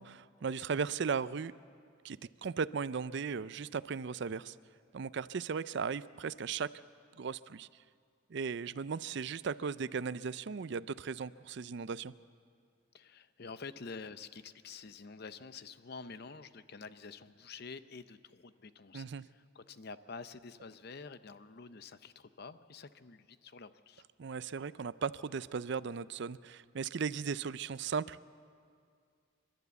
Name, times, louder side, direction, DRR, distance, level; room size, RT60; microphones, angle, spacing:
voice 1, 0.0-1.5 2.0-4.6 4.9-6.7 7.2-7.7 8.3-12.1 18.9-19.2 24.2-28.2, right 5 dB, 60° right, 16 dB, 0.4 m, -37 dB
voice 2, 12.9-24.0, left 4 dB, 50° left, 13 dB, 0.6 m, -48 dB
29.0 x 12.5 x 8.1 m, 2.2 s
head